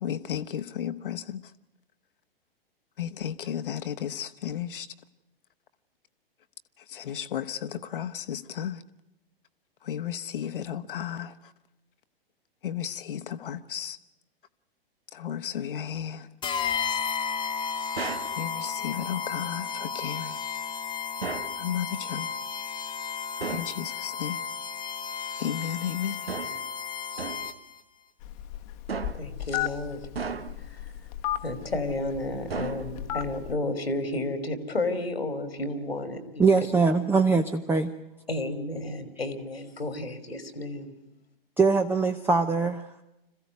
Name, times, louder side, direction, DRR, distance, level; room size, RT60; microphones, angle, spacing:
voice 1, 0.0-1.5 3.0-4.9 6.8-8.8 9.8-11.5 12.6-14.0 15.1-16.3 18.4-20.4 21.5-22.3 23.5-24.4 25.3-26.6, left 9 dB, 65° left, 1.3 m, -34 dB
sound 1, 16.4-27.8, left 6 dB, 15° left, 1.1 m, -33 dB
sound 2, 18.0-18.4 21.2-21.6 23.4-23.8 26.3-26.7 27.2-27.6 28.9-29.4 30.2-30.7 32.5-33.2, right 5 dB, 80° right, 1.4 m, -35 dB
Telephone, 28.2-33.5, left 13 dB, 40° left, 1.2 m, -35 dB
voice 2, 29.1-30.0 30.7-30.9 31.4-36.5 38.3-40.9, left 2 dB, 85° left, 3.0 m, -32 dB
voice 3, 36.4-37.9 41.6-43.0, right 4 dB, 5° right, 0.8 m, -22 dB
26.5 x 15.5 x 9.6 m
figure-of-eight pair, 110°, 30 cm